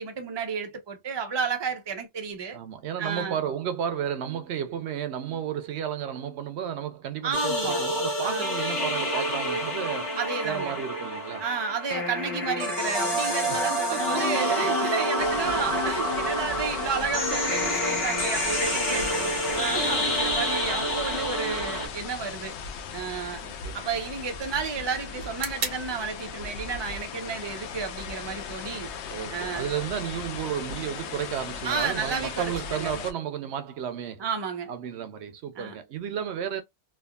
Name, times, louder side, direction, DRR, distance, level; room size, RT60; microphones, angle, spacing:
voice 1, 0.0-2.6 3.0-3.4 7.2-7.9 8.2-8.5 10.2-10.8 11.4-22.5 22.9-23.4 23.7-28.9 29.3-29.7 31.6-32.9 34.2-34.7 35.5-35.8, right 5 dB, 30° right, 0.6 m, -32 dB
voice 2, 2.5-10.2 10.4-11.4 13.5-14.4 15.4-15.6 18.6-19.3 19.7-20.2 23.4-23.8 29.1-34.2 34.7-36.6, right 9 dB, 80° right, 0.9 m, -33 dB
sound 1, 7.3-21.9, equal, 65° left, 1.2 m, -28 dB
sound 2, 15.2-33.1, left 6 dB, 90° left, 0.9 m, -37 dB
sound 3, 21.3-29.3, right 4 dB, 55° right, 1.1 m, -43 dB
3.4 x 2.3 x 2.2 m
omnidirectional pair, 1.1 m